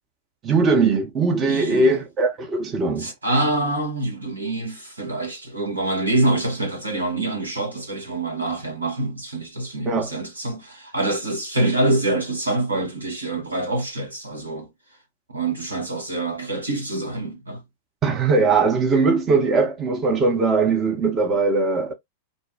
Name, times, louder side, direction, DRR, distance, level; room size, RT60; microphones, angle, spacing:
voice 1, 0.4-3.1 9.9-10.1 18.0-21.9, right 4 dB, 25° right, 0.8 m, -20 dB
voice 2, 1.5-2.0 3.0-14.7 15.3-17.6, right 2 dB, 85° right, 1.1 m, -25 dB
2.6 x 2.1 x 3.3 m
figure-of-eight pair, 95°, 0 cm